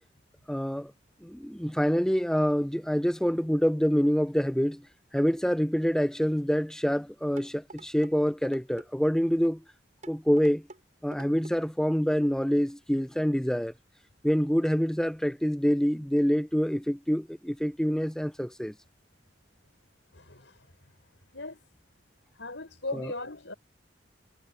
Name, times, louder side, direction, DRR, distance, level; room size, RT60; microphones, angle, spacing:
voice 1, 0.5-0.9 1.2-4.8 5.1-9.6 10.1-10.7 11.0-13.7 14.2-18.7 22.9-23.1, equal, 5° left, 0.7 m, -26 dB
sound 1, 7.4-8.1 8.4-8.9 9.4-9.6 10.0-10.8 11.1-11.6 12.1-12.3 12.7-12.8, right 2 dB, 40° right, 6.9 m, -47 dB
voice 2, 20.1-20.7 21.3-21.6 22.4-23.5, left 2 dB, 85° left, 5.4 m, -38 dB
head